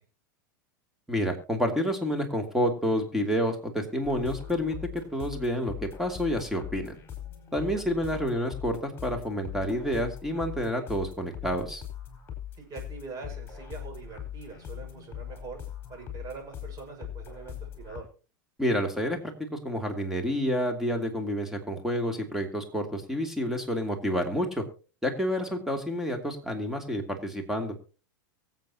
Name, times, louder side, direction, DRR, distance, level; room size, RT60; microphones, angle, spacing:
voice 1, 1.1-7.0 7.5-11.8 18.6-19.2 19.6-24.6 25.0-27.7, equal, 5° right, 4 dB, 2.8 m, -29 dB
sound 1, 4.0-18.0, left 9 dB, 20° left, 4.9 m, -41 dB
voice 2, 12.6-15.6 15.9-18.0 25.4-25.5, right 4 dB, 35° right, 2 dB, 5.7 m, -43 dB
23.5 x 8.0 x 2.9 m, 0.35 s
hypercardioid pair, 100°, 11 cm